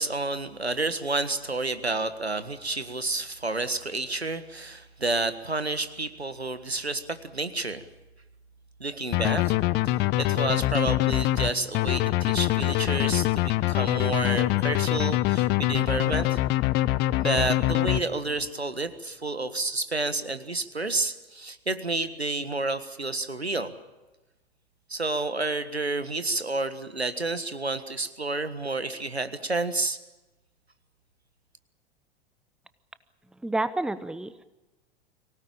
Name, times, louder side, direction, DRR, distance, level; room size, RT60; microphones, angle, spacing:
voice 1, 0.0-7.9 8.8-9.6 10.2-16.4 17.2-23.7 24.9-30.0, right 2 dB, 90° right, 11 dB, 1.6 m, -30 dB
sound 1, 9.1-18.4, left 16 dB, 35° left, 0.8 m, -24 dB
voice 2, 33.4-34.4, right 2 dB, ahead, 14 dB, 0.9 m, -29 dB
24.5 x 17.5 x 8.8 m, 1.1 s
figure-of-eight pair, 90°, 31 cm